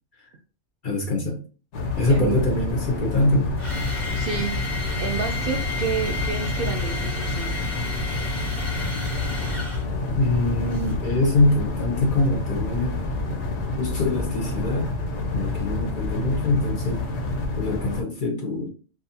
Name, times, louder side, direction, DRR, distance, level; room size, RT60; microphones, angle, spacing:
voice 1, 0.8-1.4 2.0-3.5 10.1-13.0 13.8-14.9 15.3-17.0 17.6-18.7, left 2 dB, 55° left, 1 dB, 0.7 m, -24 dB
sound 1, 1.7-18.0, left 2 dB, 75° left, 1.0 m, -28 dB
sound 2, 2.2-11.0, left 3 dB, 30° left, 0.9 m, -34 dB
voice 2, 4.2-4.5 5.0-7.6, right 6 dB, 60° right, 4 dB, 0.6 m, -30 dB
2.5 x 2.4 x 2.7 m, 0.37 s
omnidirectional pair, 1.2 m